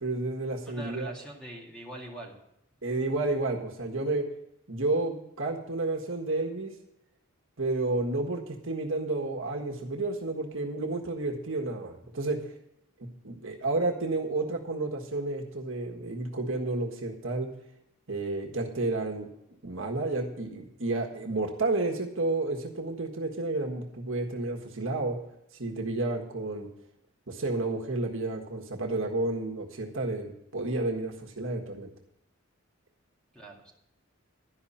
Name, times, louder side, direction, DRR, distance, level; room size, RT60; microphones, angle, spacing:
voice 1, 0.0-1.1 2.8-4.3 4.7-6.7 7.6-12.5 13.2-17.5 18.1-19.3 19.6-25.2 25.6-26.7 27.3-31.9, right 2 dB, 60° right, 1 dB, 1.6 m, -31 dB
voice 2, 0.7-2.3 33.3-33.7, right 1 dB, 5° left, -2 dB, 2.2 m, -42 dB
12.0 x 5.7 x 8.7 m, 0.79 s
head